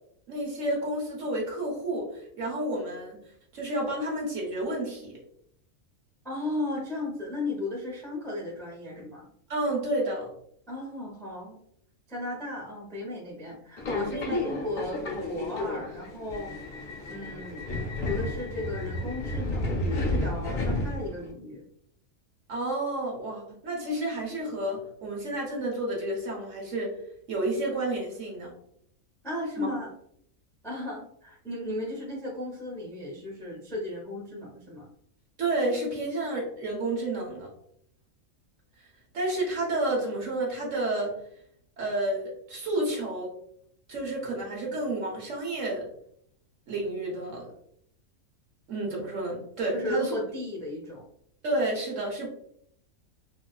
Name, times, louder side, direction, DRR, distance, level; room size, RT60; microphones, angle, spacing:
voice 1, 0.3-3.2 3.5-5.2 9.5-10.3 14.1-14.4 22.5-27.0 27.3-28.5 29.6-29.7 35.4-37.5 39.1-41.2 41.8-43.3 43.9-45.9 46.7-47.5 48.7-50.1 51.4-52.3, right 1 dB, 60° right, -2 dB, 1.4 m, -30 dB
voice 2, 6.2-9.2 10.7-11.6 12.1-16.6 17.1-17.6 18.0-21.6 29.2-29.9 30.6-34.9 49.7-51.0, left 2 dB, 5° left, -3 dB, 0.5 m, -35 dB
Subway metro underground, 13.8-21.3, left 1 dB, 50° left, 0.6 m, -32 dB
4.0 x 2.4 x 2.3 m, 0.68 s
omnidirectional pair, 1.5 m